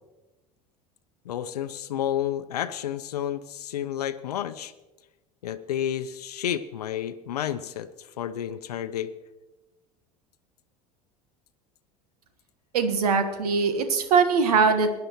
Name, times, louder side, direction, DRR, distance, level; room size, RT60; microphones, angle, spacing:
voice 1, 1.2-4.7 5.4-9.1, left 10 dB, 80° left, 11 dB, 0.7 m, -31 dB
voice 2, 12.7-15.0, right 5 dB, 80° right, 8 dB, 1.4 m, -22 dB
22.0 x 10.5 x 3.0 m, 1.1 s
hypercardioid pair, 75°, 20 cm